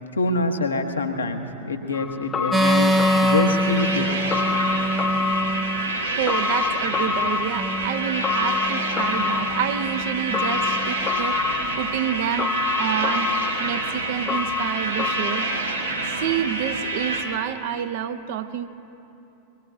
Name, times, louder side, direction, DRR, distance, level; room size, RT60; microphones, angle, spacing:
voice 1, 0.1-4.1, left 2 dB, 75° left, 4 dB, 1.2 m, -25 dB
sound 1, 1.9-16.1 16.4-16.5, left 6 dB, 20° left, 0.3 m, -28 dB
sound 2, 2.5-6.0 7.6-11.1, right 1 dB, 10° right, 0.7 m, -25 dB
sound 3, 2.6-17.2, right 2 dB, 80° right, 2.7 m, -28 dB
voice 2, 6.1-13.3 13.6-15.5 16.0-18.7, right 9 dB, 50° right, 9 dB, 0.8 m, -28 dB
23.5 x 20.0 x 2.7 m, 2.9 s
figure-of-eight pair, 90°, 0 cm